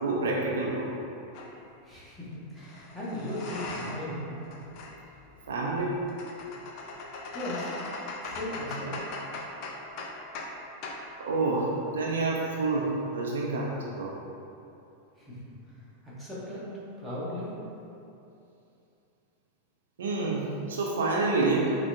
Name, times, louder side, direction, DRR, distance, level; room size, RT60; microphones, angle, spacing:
voice 1, 0.0-0.9 5.5-6.0 11.3-14.1 20.0-21.7, right 3 dB, 65° right, -3 dB, 0.5 m, -28 dB
sound 1, 1.3-1.5 2.6-4.2 4.4-10.6 10.8-11.1, left 2 dB, 45° left, 0.4 m, -40 dB
voice 2, 1.8-4.4 7.3-7.7 8.2-9.2 15.2-15.5 16.0-16.7 17.0-17.5, left 1 dB, 5° left, -9 dB, 1.2 m, -37 dB
5.7 x 2.2 x 2.7 m, 2.7 s
figure-of-eight pair, 90°, 0 cm